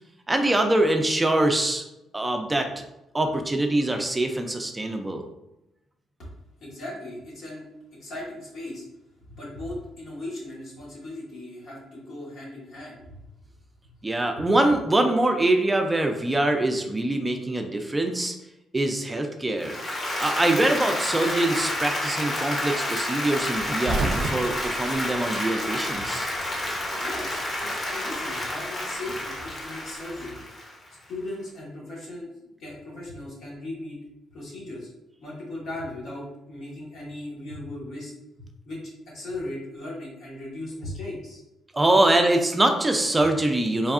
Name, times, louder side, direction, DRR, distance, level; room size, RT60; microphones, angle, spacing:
voice 1, 0.3-1.8 2.1-2.7 3.1-5.2 14.0-18.3 18.7-19.8 20.2-26.3 41.7-43.9, right 1 dB, 15° right, 4 dB, 0.3 m, -23 dB
voice 2, 6.6-7.6 8.0-8.8 9.3-13.2 25.9-26.1 27.0-30.4 31.1-32.3 32.6-34.0 34.3-34.9 35.2-38.1 38.4-41.4, left 1 dB, 70° left, -4 dB, 1.2 m, -37 dB
Applause, 19.6-30.9, left 1 dB, 35° left, 0.8 m, -30 dB
sound 1, 23.5-26.1 26.4-27.4 28.6-30.1, right 2 dB, 85° right, 0.4 m, -32 dB
3.4 x 2.2 x 2.4 m, 0.91 s
cardioid pair, 90°, 0 cm